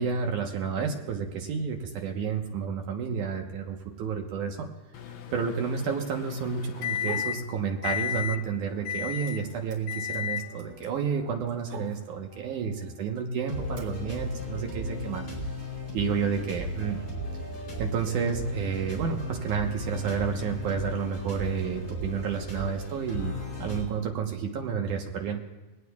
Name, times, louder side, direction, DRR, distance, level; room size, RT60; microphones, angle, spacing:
voice 1, 0.0-4.7 5.3-15.2 15.9-17.0 17.8-23.3 23.6-25.4, right 6 dB, 65° right, 2 dB, 2.4 m, -30 dB
Microwave oven, 4.9-7.5 7.8-8.4 8.8-9.4 9.9-10.5, left 10 dB, 75° left, 1.5 m, -33 dB
sound 1, 7.0-7.4 7.8-8.5 8.8-12.4 13.1-13.8, right 4 dB, 45° right, 3.4 m, -44 dB
sound 2, 7.2-8.3 8.6-12.9 13.5-23.8, equal, 20° left, 5.5 m, -37 dB
23.0 x 18.0 x 2.3 m, 1.2 s
omnidirectional pair, 4.2 m